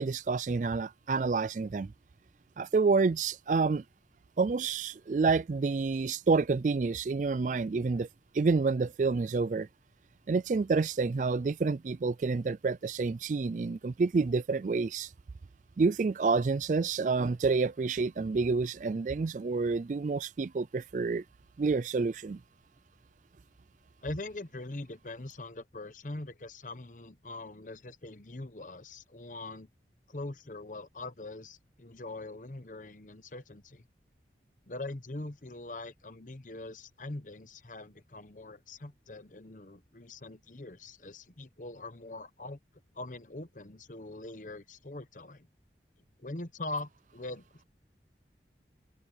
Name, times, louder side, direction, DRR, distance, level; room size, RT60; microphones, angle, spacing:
voice 1, 0.0-1.9 2.6-3.8 4.4-8.1 8.3-9.7 10.3-15.1 15.8-21.2 21.6-22.4, right 4 dB, 45° right, 0.4 m, -28 dB
voice 2, 24.0-29.7 30.1-33.8 34.7-42.6 42.9-45.5 46.2-47.6, left 2 dB, 45° left, 1.1 m, -42 dB
head